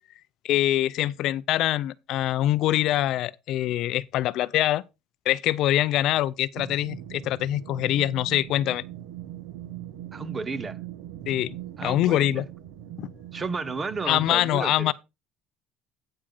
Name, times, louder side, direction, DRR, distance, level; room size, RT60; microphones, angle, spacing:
voice 1, 0.4-4.8 5.3-8.8 11.3-11.5 11.8-12.5 13.0-13.1 14.1-14.9, left 13 dB, 50° left, 0.4 m, -24 dB
sound 1, 6.6-14.4, right 12 dB, 85° right, 1.1 m, -40 dB
voice 2, 10.1-10.8 11.8-12.4 13.3-14.9, right 4 dB, 15° right, 0.6 m, -32 dB
8.8 x 8.7 x 3.7 m
cardioid pair, 175°, 0 cm